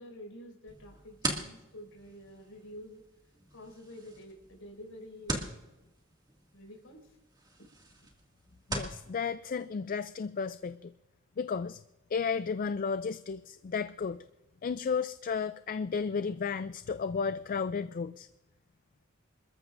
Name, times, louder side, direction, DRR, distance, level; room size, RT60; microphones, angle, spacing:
voice 1, 0.0-3.0 3.5-5.6 6.5-7.2, equal, 75° left, 0 dB, 5.3 m, -49 dB
sound 1, 0.7-9.0, right 2 dB, 20° right, 2.2 m, -41 dB
voice 2, 8.7-10.9 11.4-11.8 12.1-14.3 14.6-18.3, left 5 dB, 40° left, 12 dB, 0.4 m, -33 dB
27.5 x 14.0 x 2.6 m, 1.0 s
head